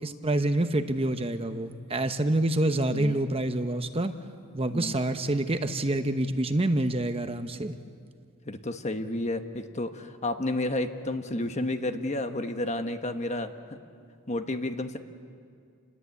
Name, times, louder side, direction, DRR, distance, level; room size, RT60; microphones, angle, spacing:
voice 1, 0.0-4.1 4.5-7.8, right 1 dB, 25° right, 8 dB, 0.9 m, -27 dB
voice 2, 8.4-13.8 14.3-15.0, left 1 dB, 30° left, 7 dB, 1.2 m, -31 dB
29.0 x 21.0 x 8.4 m, 2.3 s
head